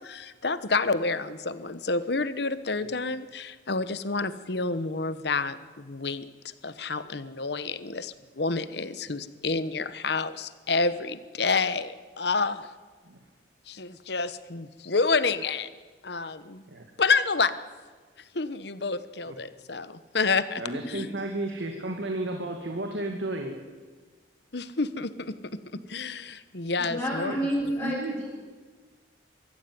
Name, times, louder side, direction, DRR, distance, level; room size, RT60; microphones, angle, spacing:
voice 1, 0.0-6.3 6.6-12.7 13.7-15.7 16.0-16.6 17.0-17.5 18.3-20.6 20.9-21.1 24.5-27.3, left 4 dB, 60° left, 13 dB, 1.1 m, -29 dB
voice 2, 20.6-23.6 27.1-27.4 27.8-28.2, right 1 dB, 75° right, 3 dB, 2.1 m, -33 dB
voice 3, 26.8-28.3, equal, 15° left, -9 dB, 7.6 m, -30 dB
23.0 x 14.5 x 9.5 m, 1.4 s
head